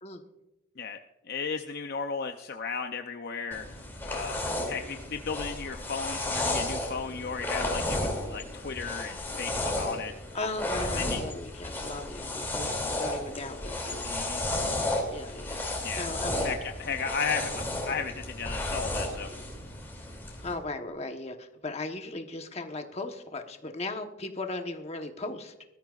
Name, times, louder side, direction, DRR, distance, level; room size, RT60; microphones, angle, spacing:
voice 1, 1.3-3.6 4.1-4.4 4.7-10.1 11.0-11.2 14.0-14.4 15.8-16.1 16.4-19.3, left 5 dB, 50° left, 6 dB, 0.6 m, -35 dB
sound 1, 3.5-20.5, left 1 dB, 10° left, 2.7 m, -33 dB
voice 2, 10.3-14.2 14.7-16.6 20.4-25.5, left 2 dB, 30° left, 5 dB, 1.1 m, -37 dB
20.0 x 13.0 x 2.4 m, 0.97 s
head